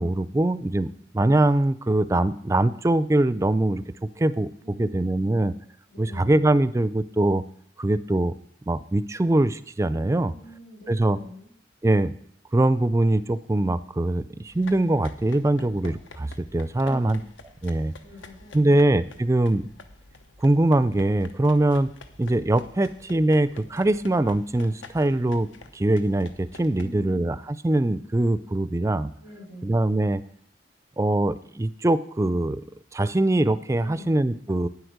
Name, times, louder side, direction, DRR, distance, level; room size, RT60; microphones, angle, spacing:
voice 1, 0.0-3.8 4.2-5.5 6.0-7.4 7.8-8.3 8.7-10.3 10.9-11.2 11.8-12.1 12.5-17.2 17.6-17.9 18.5-19.7 20.4-21.9 22.2-29.1 29.6-30.2 31.0-32.6 32.9-34.7, right 1 dB, 15° right, 16 dB, 0.3 m, -22 dB
voice 2, 4.6-5.4 5.9-6.4 10.2-11.5 16.8-17.3 18.0-18.8 26.7-27.3 29.2-29.8 33.8-34.2, left 1 dB, 65° left, -5 dB, 3.7 m, -44 dB
sound 1, 14.5-26.9, left 3 dB, 85° left, 1.0 m, -48 dB
9.6 x 7.9 x 6.5 m, 0.65 s
head